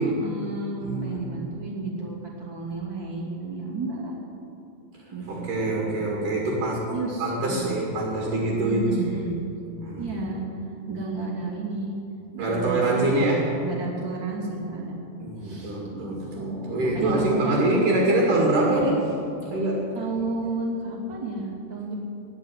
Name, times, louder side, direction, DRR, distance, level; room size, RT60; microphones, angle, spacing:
voice 1, 0.0-4.2 5.1-6.0 6.9-7.8 8.6-9.4 10.0-10.5 10.9-11.9 12.3-14.9 15.4-16.0 16.4-17.8 18.6-18.8 19.9-21.9, right 3 dB, 30° right, -4 dB, 2.8 m, -32 dB
voice 2, 0.8-1.4 5.3-6.9 7.2-9.0 9.8-10.1 12.4-13.5 15.2-19.0 19.5-19.9, right 2 dB, 55° right, -3 dB, 3.4 m, -24 dB
18.5 x 6.2 x 9.9 m, 2.7 s
omnidirectional pair, 4.8 m